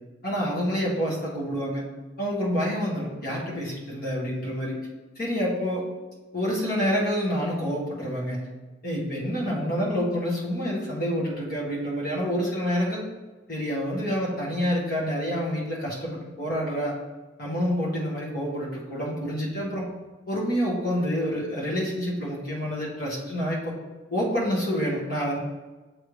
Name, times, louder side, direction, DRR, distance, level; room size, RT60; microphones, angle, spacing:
voice 1, 0.2-1.8 2.2-4.7 5.2-5.8 6.3-8.5 8.8-13.0 13.5-16.9 17.4-19.8 20.3-23.7 24.1-25.4, equal, 50° left, -5 dB, 1.7 m, -27 dB
8.4 x 3.4 x 3.3 m, 1.2 s
head